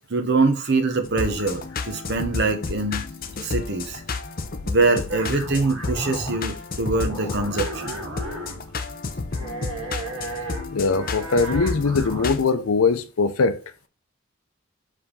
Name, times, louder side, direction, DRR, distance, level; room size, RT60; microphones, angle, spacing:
voice 1, 0.1-3.0 3.4-4.0 4.6-8.0, right 3 dB, 55° right, 0.9 m, -23 dB
sound 1, 1.0-12.5, left 4 dB, 45° left, 0.6 m, -32 dB
sound 2, 5.1-6.6 6.9-8.7 9.3-12.3, right 2 dB, 85° right, 2.2 m, -34 dB
voice 2, 10.7-13.6, left 4 dB, 90° left, 0.6 m, -21 dB
5.0 x 3.5 x 5.4 m
head